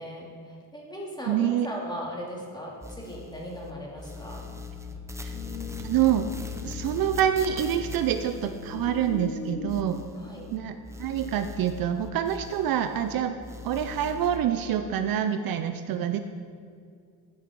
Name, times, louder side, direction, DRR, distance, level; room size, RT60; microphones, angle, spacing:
voice 1, 0.0-4.4 10.2-10.5, equal, 10° left, -2 dB, 2.3 m, -38 dB
voice 2, 1.3-1.7 5.2-5.4 5.8-6.3 6.6-10.0 10.5-13.4 13.6-16.2, right 10 dB, 60° right, 8 dB, 0.6 m, -26 dB
sound 1, 2.8-3.7 4.0-10.6 10.8-13.1 13.4-14.4, left 4 dB, 5° right, 0.6 m, -40 dB
sound 2, 4.2-10.2, left 5 dB, 75° left, 2.1 m, -45 dB
sound 3, 7.5-8.1 8.4-13.7, left 3 dB, 50° left, 1.0 m, -43 dB
12.0 x 5.9 x 4.7 m, 2.3 s
cardioid pair, 105°, 40 cm